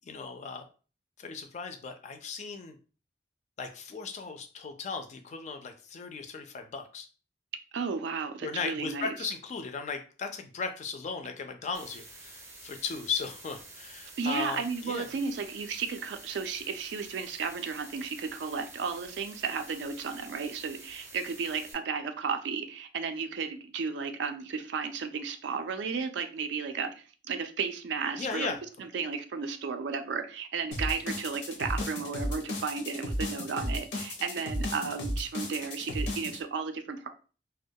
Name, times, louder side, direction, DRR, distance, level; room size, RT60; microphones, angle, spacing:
voice 1, 0.1-0.7 1.2-2.8 3.6-7.1 8.4-15.1 28.2-28.6, left 5 dB, 40° left, 0.3 m, -37 dB
voice 2, 7.7-9.3 14.2-37.1, right 5 dB, 75° right, 0.3 m, -34 dB
sound 1, 11.7-21.7, right 2 dB, 15° right, 0.5 m, -49 dB
sound 2, 30.7-36.4, left 1 dB, 90° left, 0.6 m, -34 dB
2.2 x 2.1 x 2.7 m
head